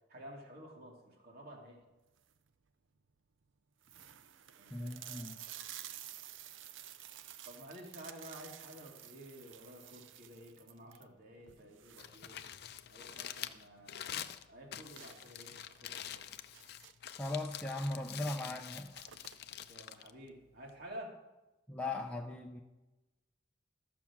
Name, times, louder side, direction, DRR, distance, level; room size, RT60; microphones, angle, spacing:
voice 1, 0.1-1.8 4.6-5.8 7.4-12.4 12.9-16.3 19.5-21.2, equal, 55° right, 0 dB, 2.5 m, -52 dB
sound 1, 2.0-2.5 3.1-3.2 3.4-3.5 3.8-13.4 13.7-13.8 14.2-14.3 15.0-17.2 18.1-18.3 18.5-19.7, right 11 dB, 85° right, 0.6 m, -52 dB
voice 2, 4.7-5.4 17.2-18.9 21.7-22.6, left 2 dB, 5° left, -1 dB, 0.7 m, -38 dB
Crumpling crinkling, 11.8-20.9, left 10 dB, 55° left, 0.5 m, -47 dB
13.5 x 6.0 x 7.2 m, 1.1 s
head